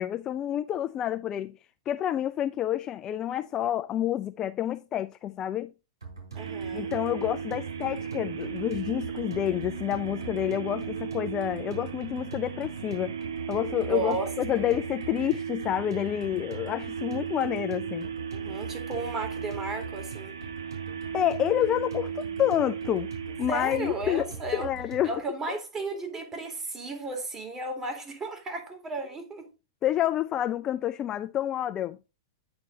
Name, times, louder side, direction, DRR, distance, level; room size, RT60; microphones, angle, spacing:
voice 1, 0.0-1.6 1.9-5.7 6.7-13.1 13.5-18.1 21.1-23.1 23.4-24.3 24.5-25.1 29.8-32.0, left 11 dB, 30° left, 0.3 m, -28 dB
sound 1, 6.0-25.2, right 4 dB, 90° right, 3.6 m, -42 dB
voice 2, 6.3-6.9 13.8-14.6 18.3-20.4 23.5-24.7 25.0-29.5, right 3 dB, 20° right, 2.3 m, -34 dB
sound 2, 6.4-24.6, right 7 dB, 75° right, 1.0 m, -36 dB
8.6 x 4.4 x 3.8 m
hypercardioid pair, 110°, 2 cm